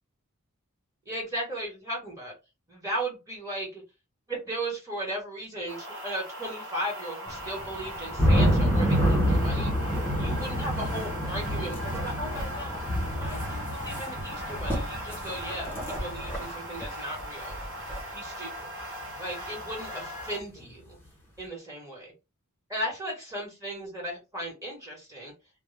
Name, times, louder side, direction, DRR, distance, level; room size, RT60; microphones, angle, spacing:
voice 1, 1.0-2.3 2.7-3.8 4.3-9.7 10.2-17.6 18.1-18.7 19.2-21.0 21.4-22.1 22.7-25.3, right 1 dB, 15° right, -2 dB, 1.1 m, -36 dB
sound 1, 5.7-20.4, equal, 60° right, 0.9 m, -39 dB
sound 2, 7.3-16.5 16.8-16.9 17.2-17.3 17.5-18.0 19.7-19.8 20.6-20.7, equal, 10° left, 0.7 m, -27 dB
2.2 x 2.1 x 3.1 m, 0.27 s
head